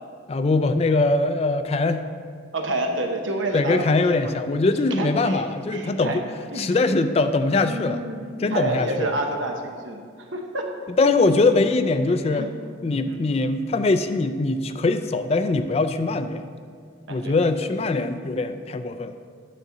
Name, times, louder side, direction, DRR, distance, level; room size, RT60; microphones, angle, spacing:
voice 1, 0.3-2.0 3.5-6.2 6.6-8.0 8.4-9.1 11.0-12.5 12.8-16.5 17.1-19.1, left 3 dB, 30° left, 9 dB, 0.3 m, -22 dB
voice 2, 2.5-4.3 4.9-5.4 5.7-6.8 7.6-10.0 10.3-10.7 12.1-12.5 13.1-13.2 17.1-17.3, right 2 dB, 80° right, 3 dB, 1.0 m, -29 dB
9.9 x 6.6 x 3.9 m, 2.1 s
head